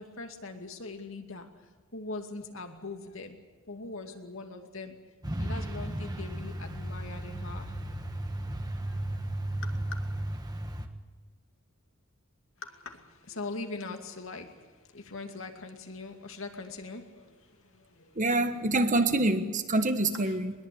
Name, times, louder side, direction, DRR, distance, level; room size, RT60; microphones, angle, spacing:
voice 1, 0.0-3.4 3.7-5.0 5.4-7.7 8.8-9.2 9.6-9.9 12.6-18.2 20.2-20.4, left 3 dB, 65° left, 2.5 m, -42 dB
Truck, 5.2-10.9, right 1 dB, 20° right, 1.5 m, -35 dB
voice 2, 18.1-20.5, right 2 dB, 35° right, 1.4 m, -26 dB
21.5 x 21.0 x 8.7 m
head